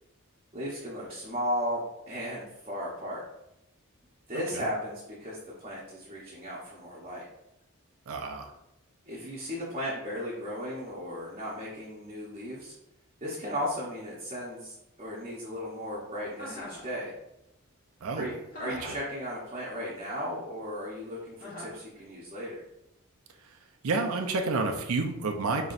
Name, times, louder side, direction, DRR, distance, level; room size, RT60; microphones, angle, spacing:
voice 1, 0.5-3.2 4.3-7.2 9.1-12.8 13.2-17.1 18.1-18.3 18.6-22.6, equal, 30° right, -7 dB, 0.8 m, -35 dB
voice 2, 4.3-4.7 8.1-8.5 18.0-18.3 18.7-18.9 23.4-23.6 23.8-25.7, right 3 dB, 90° right, 3 dB, 0.6 m, -30 dB
Chuckle chortle, 16.4-16.9 18.5-19.1 21.4-21.8, left 2 dB, 40° left, 1.2 m, -41 dB
5.4 x 3.0 x 2.5 m, 0.85 s
head